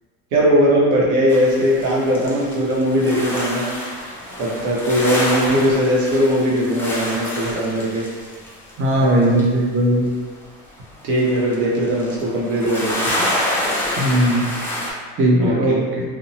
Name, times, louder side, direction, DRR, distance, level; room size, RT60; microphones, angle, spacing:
voice 1, 0.3-3.7 4.4-8.0 9.0-9.2 11.0-13.1 15.4-15.8, equal, 70° right, -5 dB, 0.8 m, -19 dB
sound 1, 1.3-9.4 10.4-10.5 10.8-14.9, left 1 dB, 5° left, 0.4 m, -28 dB
voice 2, 8.8-10.0 14.0-14.5 15.2-16.0, right 1 dB, 30° right, -3 dB, 0.6 m, -17 dB
2.6 x 2.1 x 2.8 m, 1.5 s
supercardioid pair, 115°, 39 cm